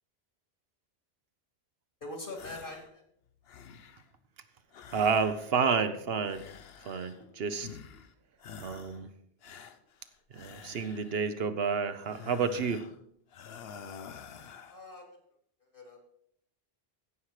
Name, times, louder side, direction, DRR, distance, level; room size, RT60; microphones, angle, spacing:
voice 1, 2.0-3.0 14.7-15.0 15.7-16.0, left 2 dB, 60° left, 3 dB, 2.6 m, -42 dB
sound 1, 2.3-2.9 3.3-4.1 4.7-5.8 6.2-7.3 7.6-8.1 8.4-9.0 9.4-11.3 12.0-13.0 13.3-14.8, left 7 dB, 75° left, 1.0 m, -49 dB
voice 2, 4.9-6.5 6.8-7.7 8.6-9.1 10.3-12.8, right 5 dB, 75° right, 10 dB, 1.1 m, -30 dB
15.5 x 5.9 x 4.9 m, 0.69 s
omnidirectional pair, 1.0 m